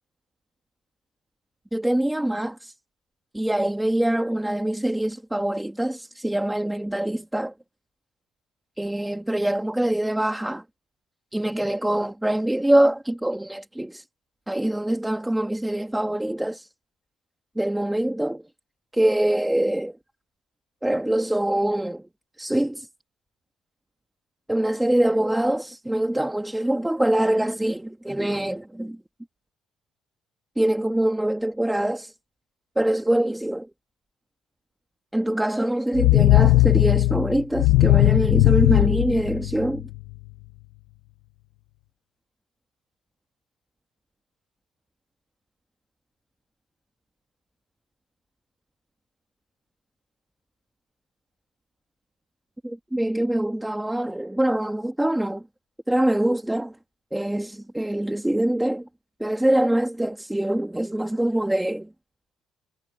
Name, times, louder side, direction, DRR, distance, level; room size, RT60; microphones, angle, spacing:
voice 1, 1.7-2.7 3.3-7.5 8.8-10.6 11.3-14.0 14.5-16.7 17.5-18.4 18.9-19.9 20.8-22.0 22.4-22.9 24.5-29.0 30.6-32.1 32.7-33.7 35.1-39.8 52.6-55.4 55.9-56.7 57.1-58.9 59.2-61.9, right 1 dB, 5° right, 1.5 m, -24 dB
sound 1, 35.9-40.0, left 19 dB, 90° left, 0.6 m, -18 dB
cardioid pair, 100°, 0 cm